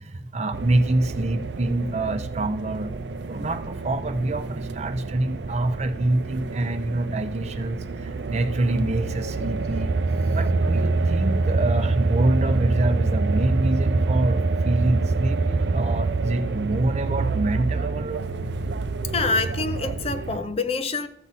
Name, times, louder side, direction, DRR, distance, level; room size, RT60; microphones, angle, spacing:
voice 1, 0.0-2.9 3.3-9.9 10.3-18.3, right 2 dB, 40° right, 0.7 m, -26 dB
sound 1, 0.5-20.4, right 3 dB, 85° right, 0.6 m, -26 dB
voice 2, 19.1-21.1, left 4 dB, 35° left, 0.6 m, -26 dB
14.0 x 7.3 x 4.1 m
head